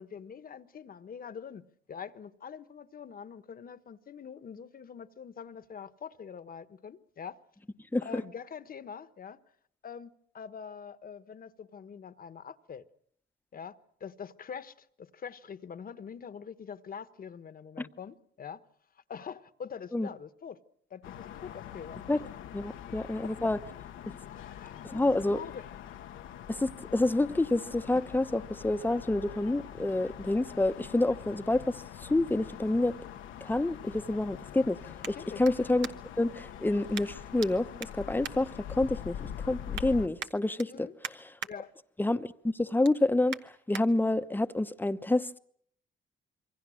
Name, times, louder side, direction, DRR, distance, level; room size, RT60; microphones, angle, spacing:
voice 1, 0.0-1.6 1.9-7.4 8.0-9.4 9.8-12.8 13.5-13.7 14.0-18.6 19.1-20.6 20.9-22.0 22.9-23.5 24.3-25.7 35.1-35.4 40.7-40.9 41.4-41.7, left 7 dB, 45° left, 1.3 m, -44 dB
sound 1, 21.0-40.1, left 10 dB, 85° left, 1.2 m, -44 dB
voice 2, 22.5-23.6 24.9-25.4 26.5-31.8 32.0-32.9 33.4-34.8 35.1-35.9 36.2-39.2 39.5-40.9 42.0-45.4, left 2 dB, 10° left, 0.9 m, -28 dB
sound 2, 35.0-36.3 36.9-37.5 37.8-39.1 39.5-39.9 40.2-41.5 42.0-42.2 42.6-43.9 44.4-44.5, right 8 dB, 70° right, 1.2 m, -43 dB
26.5 x 23.5 x 6.4 m
cardioid pair, 90°, 20 cm